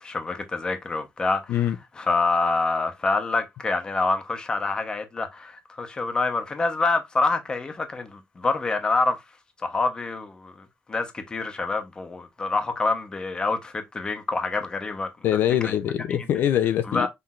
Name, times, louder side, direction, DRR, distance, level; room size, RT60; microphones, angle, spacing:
voice 1, 0.0-9.2 9.6-15.7 16.1-16.2 16.9-17.1, left 3 dB, 20° left, 0.8 m, -27 dB
voice 2, 15.2-17.1, left 11 dB, 65° left, 0.4 m, -23 dB
5.7 x 3.3 x 2.4 m
cardioid pair, 160°, 4 cm